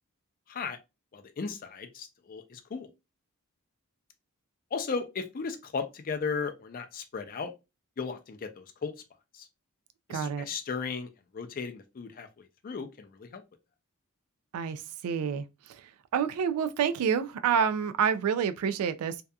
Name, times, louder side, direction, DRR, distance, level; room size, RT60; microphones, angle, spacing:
voice 1, 1.1-2.9 4.7-7.5 8.0-8.9 9.3-9.5 10.1-12.3 12.6-13.4, left 5 dB, 40° left, 0.4 m, -36 dB
voice 2, 10.1-10.5 14.5-19.2, right 7 dB, 80° right, 0.3 m, -28 dB
2.7 x 2.3 x 2.2 m
head